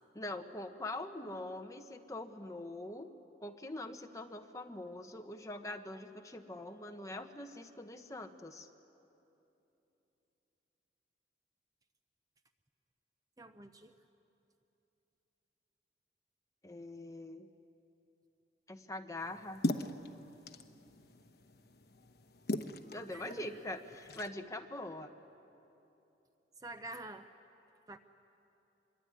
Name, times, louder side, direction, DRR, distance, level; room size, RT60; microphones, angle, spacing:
voice 1, 0.1-3.1 3.4-8.7 16.6-17.5 18.7-19.7 22.9-25.1, left 1 dB, 15° left, 5 dB, 1.1 m, -43 dB
voice 2, 13.4-13.9 23.1-23.6 26.6-27.3 27.9-28.0, right 2 dB, 20° right, 8 dB, 0.6 m, -47 dB
sound 1, 19.2-24.3, left 1 dB, 55° left, 1.1 m, -40 dB
26.0 x 22.5 x 9.7 m, 3.0 s
head